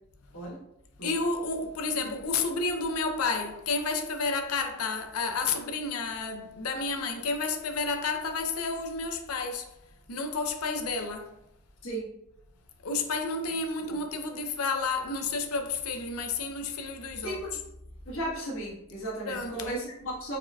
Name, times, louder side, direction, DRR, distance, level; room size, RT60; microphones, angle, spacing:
voice 1, 1.0-9.7 10.1-11.4 12.8-17.4 19.2-19.7, left 4 dB, 85° left, 0.6 m, -31 dB
voice 2, 11.8-12.1 17.2-17.6 18.0-20.4, right 1 dB, 65° left, 1.5 m, -35 dB
4.9 x 4.3 x 2.3 m
head